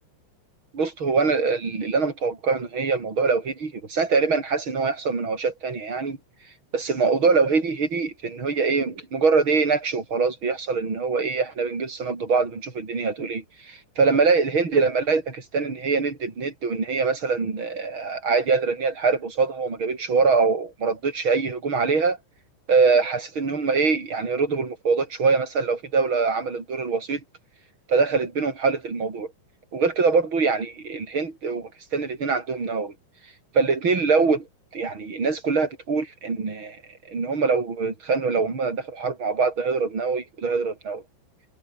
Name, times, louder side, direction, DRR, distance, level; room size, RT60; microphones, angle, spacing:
voice 1, 0.7-6.2 6.7-22.2 22.7-27.2 27.9-29.3 29.7-32.9 33.5-34.5 34.7-36.8 37.1-41.0, right 4 dB, 25° right, 4.8 m, -23 dB
omnidirectional pair, 5.3 m